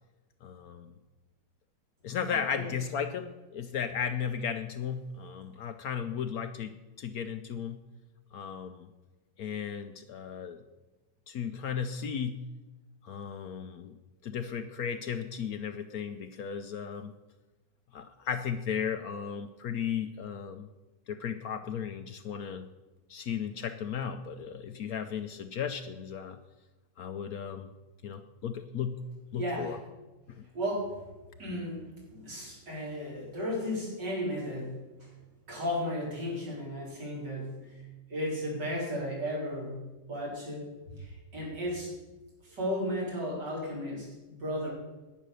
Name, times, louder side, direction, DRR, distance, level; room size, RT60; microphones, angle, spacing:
voice 1, 0.4-0.9 2.0-7.8 8.3-8.9 9.4-10.6 11.3-12.4 13.0-14.0 14.2-17.1 17.9-20.7 21.1-22.7 23.1-26.4 27.0-27.7 28.0-29.0 29.3-29.8 30.3-30.4, left 7 dB, 65° left, 9 dB, 1.0 m, -35 dB
voice 2, 2.3-2.7 29.3-29.8 30.5-31.0 31.4-35.1 35.5-37.8 38.1-40.7 41.0-41.9 42.4-44.7, equal, 70° right, -4 dB, 4.8 m, -35 dB
10.5 x 9.5 x 6.6 m, 1.1 s
omnidirectional pair, 2.0 m